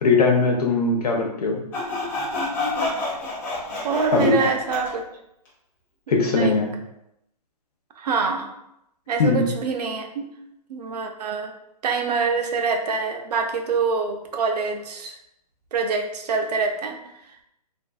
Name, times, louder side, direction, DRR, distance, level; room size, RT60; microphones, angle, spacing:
voice 1, 0.0-1.6 4.1-4.4 6.1-6.7 9.2-9.4, left 3 dB, 65° left, 1 dB, 0.7 m, -20 dB
Sawing, 1.7-4.9, left 2 dB, 10° left, 0.4 m, -28 dB
voice 2, 3.8-5.0 6.1-6.5 8.0-8.5 9.1-10.2 10.7-11.5 11.8-15.2 15.7-17.0, right 4 dB, 70° right, 4 dB, 0.5 m, -25 dB
2.5 x 2.4 x 2.3 m, 0.81 s
hypercardioid pair, 145°, 21 cm